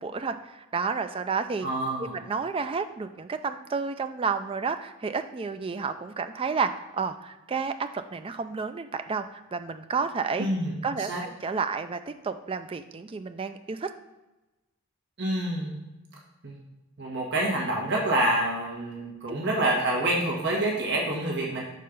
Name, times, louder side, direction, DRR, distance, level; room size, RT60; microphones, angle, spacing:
voice 1, 0.0-1.7 2.0-10.5 10.8-13.9, right 5 dB, 25° right, 9 dB, 0.3 m, -31 dB
voice 2, 1.6-2.1 10.4-10.7 11.0-11.2 15.2-15.7 16.4-16.5 17.0-21.6, right 1 dB, 50° right, -3 dB, 1.5 m, -27 dB
6.6 x 4.2 x 5.2 m, 1.1 s
head